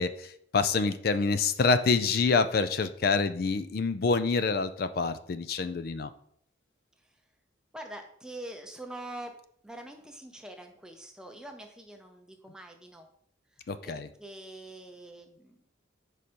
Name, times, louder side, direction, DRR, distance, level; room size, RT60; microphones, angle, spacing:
voice 1, 0.0-6.1 13.7-14.1, left 4 dB, 50° left, 12 dB, 0.4 m, -27 dB
voice 2, 7.7-13.1 13.5-15.6, right 1 dB, 5° right, 3 dB, 0.6 m, -45 dB
5.2 x 4.8 x 4.3 m, 0.67 s
head